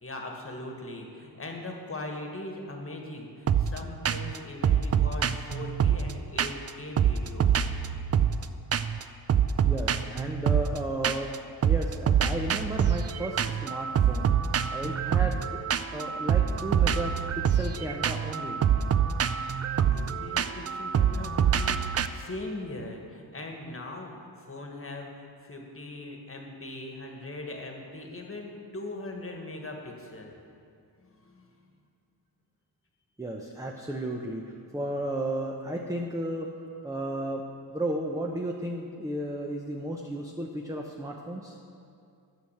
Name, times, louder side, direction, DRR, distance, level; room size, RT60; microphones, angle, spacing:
voice 1, 0.0-7.6 19.9-25.1 25.4-30.4 31.0-31.5, left 2 dB, 35° left, 2 dB, 1.5 m, -40 dB
sound 1, 3.5-3.8 4.0-4.4 4.6-6.7 7.0-8.4 8.7-9.0 9.3-11.4 11.6-22.1, right 8 dB, 40° right, 0.4 m, -26 dB
voice 2, 9.6-11.3 11.6-14.3 14.7-15.4 15.9-18.6 33.2-36.5 36.8-37.4 37.7-41.6, right 1 dB, 10° right, 0 dB, 0.7 m, -34 dB
8.6 x 6.4 x 6.6 m, 2.4 s
cardioid pair, 75°, 40 cm